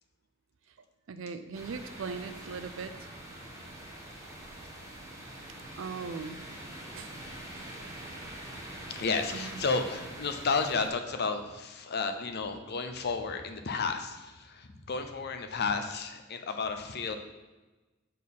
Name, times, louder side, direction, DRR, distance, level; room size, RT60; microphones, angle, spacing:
voice 1, 1.1-2.9 5.8-6.4 7.0-7.1 9.3-9.6, right 5 dB, 70° right, 10 dB, 0.5 m, -39 dB
sound 1, 1.5-10.9, right 1 dB, 15° right, 1.2 m, -44 dB
voice 2, 8.9-17.1, left 4 dB, 55° left, 6 dB, 0.7 m, -32 dB
6.5 x 4.2 x 5.4 m, 1.2 s
head